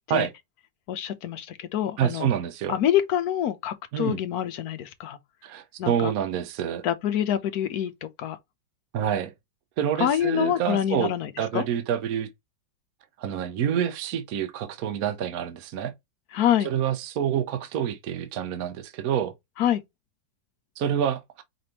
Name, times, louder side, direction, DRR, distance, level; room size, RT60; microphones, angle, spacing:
voice 1, 0.9-2.3 2.7-5.2 5.8-6.1 6.8-8.4 10.0-11.6 16.3-16.7 19.6-19.8, left 10 dB, 65° left, 1.1 m, -26 dB
voice 2, 2.0-2.8 3.9-4.2 5.4-6.8 8.9-9.3 9.8-12.3 13.2-15.9 16.6-19.3 20.8-21.4, right 9 dB, 65° right, 1.0 m, -27 dB
5.1 x 3.3 x 2.8 m
omnidirectional pair, 2.0 m